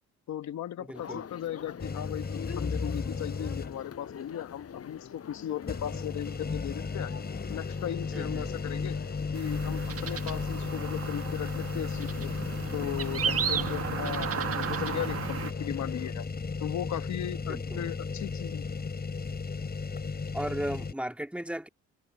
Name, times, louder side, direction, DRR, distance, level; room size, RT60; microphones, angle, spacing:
voice 1, 0.3-7.1 7.5-9.0 9.3-12.4 12.7-16.3 16.6-18.8, left 11 dB, 65° left, 1.3 m, -37 dB
voice 2, 0.8-1.3 8.1-8.6 17.5-18.0 20.3-21.7, right 1 dB, 5° right, 2.9 m, -36 dB
sound 1, 0.9-16.1, left 7 dB, 50° left, 6.9 m, -45 dB
sound 2, 1.8-4.0 4.4-4.5 5.6-20.9, left 4 dB, 30° left, 6.8 m, -35 dB
sound 3, 9.3-15.5, right 8 dB, 50° right, 1.5 m, -34 dB
cardioid pair, 90°, 30 cm